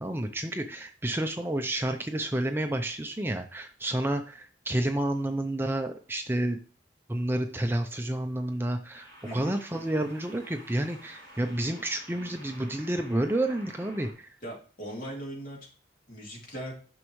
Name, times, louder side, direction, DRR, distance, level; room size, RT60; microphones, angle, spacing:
voice 1, 0.0-6.6 7.1-14.3, right 1 dB, 10° right, 5 dB, 0.5 m, -30 dB
sound 1, 8.9-14.1, equal, 20° left, 4.2 m, -51 dB
voice 2, 9.2-9.6 14.4-15.7 16.1-16.7, equal, 50° left, -3 dB, 2.8 m, -39 dB
9.7 x 6.2 x 3.1 m, 0.40 s
head